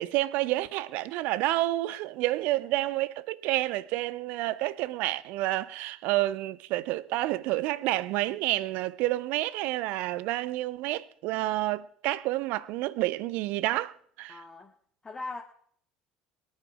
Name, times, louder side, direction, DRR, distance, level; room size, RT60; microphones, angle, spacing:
voice 1, 0.0-14.4, right 17 dB, 55° right, 0.6 m, -29 dB
voice 2, 14.3-14.7 15.0-15.4, left 3 dB, 20° left, 1.9 m, -39 dB
22.5 x 10.5 x 4.8 m
figure-of-eight pair, 60°, 3 cm